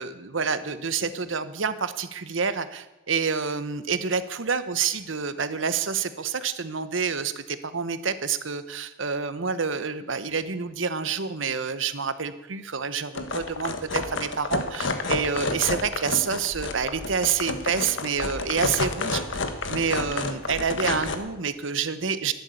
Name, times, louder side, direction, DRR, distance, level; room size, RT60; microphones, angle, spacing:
voice 1, 0.0-19.2 19.7-22.3, right 6 dB, 80° right, 12 dB, 1.0 m, -28 dB
sound 1, 13.1-21.2, left 3 dB, 75° left, 1.4 m, -30 dB
12.0 x 11.0 x 8.4 m, 1.0 s
head